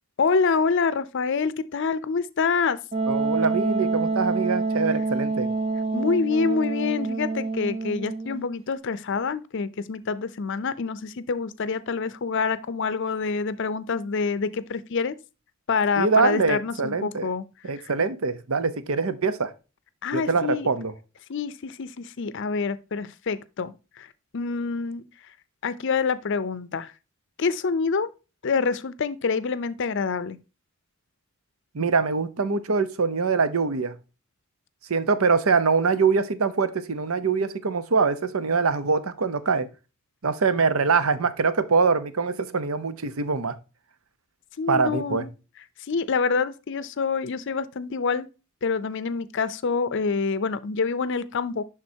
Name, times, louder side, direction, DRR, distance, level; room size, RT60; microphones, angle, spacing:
voice 1, 0.2-2.8 5.9-15.1 15.7-17.4 17.7-17.9 20.0-20.7 21.3-24.1 24.3-25.0 25.6-26.9 27.4-28.1 28.4-30.4 44.6-45.3 45.9-48.3 48.6-51.6, left 5 dB, 60° left, 0.5 m, -26 dB
Wind instrument woodwind instrument, 2.9-8.4, right 3 dB, 30° right, 0.7 m, -27 dB
voice 2, 3.1-5.5 16.0-17.3 17.6-19.5 20.1-20.9 31.7-33.9 34.9-39.7 40.2-43.6 44.7-45.3, right 4 dB, 85° right, 0.8 m, -23 dB
10.5 x 3.8 x 2.8 m
head